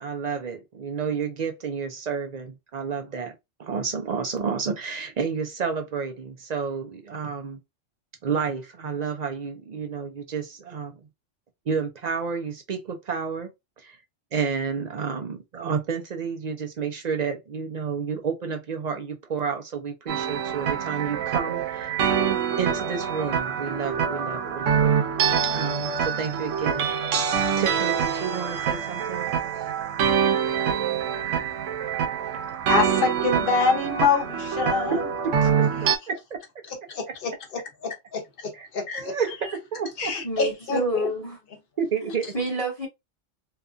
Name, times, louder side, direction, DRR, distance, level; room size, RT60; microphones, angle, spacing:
voice 1, 0.0-3.3 3.6-7.6 8.2-10.9 11.7-13.5 13.8-14.0 14.3-21.9 22.6-24.9 25.5-26.9 27.6-29.3 34.9-35.0 35.6-36.4 37.1-37.2 38.5-38.7 38.9-39.4 39.7-40.1 41.8-42.3, right 6 dB, 55° right, 0.5 m, -30 dB
sound 1, 20.1-36.0, right 7 dB, 85° right, 1.0 m, -25 dB
voice 2, 32.7-35.0 35.8-35.9 36.9-39.1 40.0-41.1, left 5 dB, 50° left, 0.9 m, -26 dB
voice 3, 40.2-41.4 42.0-42.9, right 1 dB, 20° left, 1.0 m, -28 dB
2.8 x 2.4 x 2.4 m
omnidirectional pair, 1.3 m